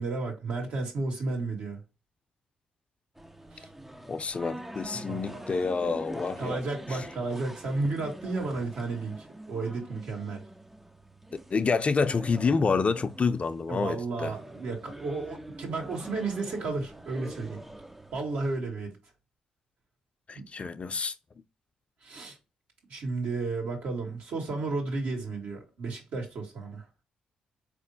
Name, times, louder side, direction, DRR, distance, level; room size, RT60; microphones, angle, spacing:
voice 1, 0.0-1.8 3.5-3.7 5.1-5.4 6.4-10.5 13.7-17.6 18.1-18.9 20.3-20.4 22.0-22.4 22.9-26.9, right 3 dB, 70° right, 1.8 m, -33 dB
sound 1, 3.2-18.6, right 1 dB, 10° right, 0.5 m, -45 dB
voice 2, 4.1-6.6 11.5-14.3 20.3-21.1, left 4 dB, 40° left, 0.6 m, -28 dB
4.3 x 3.1 x 2.7 m
hypercardioid pair, 50°, 3 cm